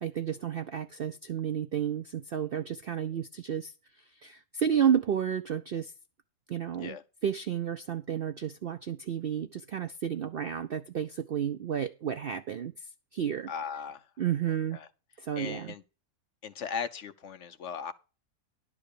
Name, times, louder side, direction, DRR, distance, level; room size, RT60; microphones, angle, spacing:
voice 1, 0.0-5.9 6.5-7.0 7.2-12.9 13.1-13.5 14.2-14.8 15.2-15.7, right 8 dB, 65° right, 0.5 m, -31 dB
voice 2, 13.5-14.1 14.7-14.9 15.4-15.8 16.4-17.9, left 7 dB, 60° left, 0.9 m, -37 dB
11.5 x 4.7 x 6.7 m
omnidirectional pair, 1.6 m